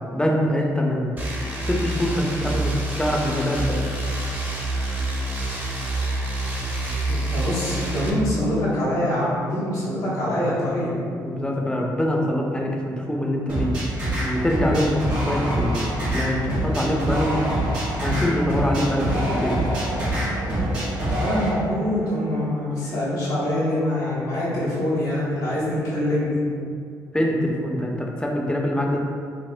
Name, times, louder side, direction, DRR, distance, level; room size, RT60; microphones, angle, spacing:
voice 1, 0.1-1.2 1.6-2.7 3.0-3.8 11.2-13.7 14.2-15.8 16.1-17.4 18.0-19.6 27.1-29.0, left 1 dB, 10° left, -1 dB, 0.6 m, -24 dB
sound 1, 1.2-8.1, right 2 dB, 20° right, 0.8 m, -27 dB
voice 2, 7.1-10.9 21.0-26.4, left 1 dB, 90° left, -11 dB, 0.9 m, -24 dB
sound 2, 13.5-21.5, right 1 dB, 85° right, 1.2 m, -25 dB
sound 3, 17.8-22.5, right 2 dB, 60° right, 0.6 m, -35 dB
4.2 x 2.0 x 2.5 m, 2.3 s
hypercardioid pair, 50°, 9 cm